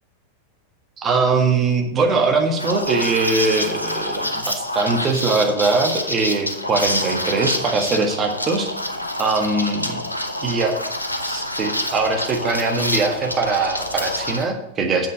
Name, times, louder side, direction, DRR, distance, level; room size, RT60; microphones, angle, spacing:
voice 1, 1.0-8.8 9.2-10.0 10.4-10.7 11.2-15.1, right 3 dB, 25° right, 3 dB, 1.6 m, -21 dB
Liquid, 2.6-14.4, left 1 dB, 85° left, 0.8 m, -27 dB
7.8 x 6.1 x 6.8 m, 0.86 s
figure-of-eight pair, 90°, 0 cm